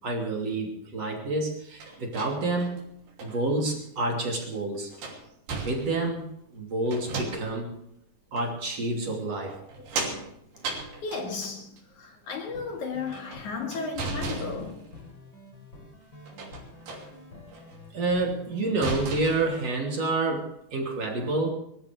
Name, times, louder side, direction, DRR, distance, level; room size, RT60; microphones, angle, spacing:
voice 1, 0.0-2.8 3.2-4.9 5.5-6.3 6.5-7.8 8.3-9.6 17.9-21.5, right 2 dB, 50° right, 4.0 m, -28 dB
sound 1, 1.8-3.4 4.3-4.4 4.9-6.2 6.9-7.7 8.4-8.5 9.5-11.8 13.0-15.1 16.3-17.1 17.5-17.8 18.2-18.3 18.6-19.7, right 3 dB, 85° right, 4.7 m, -36 dB
voice 2, 10.9-14.9, left 4 dB, 60° left, 3.2 m, -35 dB
sound 2, 12.5-19.3, left 2 dB, 35° left, 3.6 m, -48 dB
24.0 x 15.0 x 3.4 m
omnidirectional pair, 3.9 m